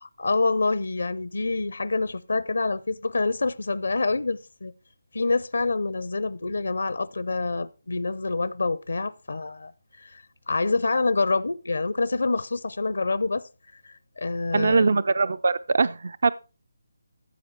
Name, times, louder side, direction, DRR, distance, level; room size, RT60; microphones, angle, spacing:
voice 1, 0.0-4.7 5.1-9.7 10.0-13.5 13.8-15.0, left 3 dB, 70° left, 0.6 m, -27 dB
voice 2, 14.5-16.3, right 4 dB, 60° right, 0.5 m, -22 dB
14.5 x 7.5 x 4.5 m
figure-of-eight pair, 155°, 0 cm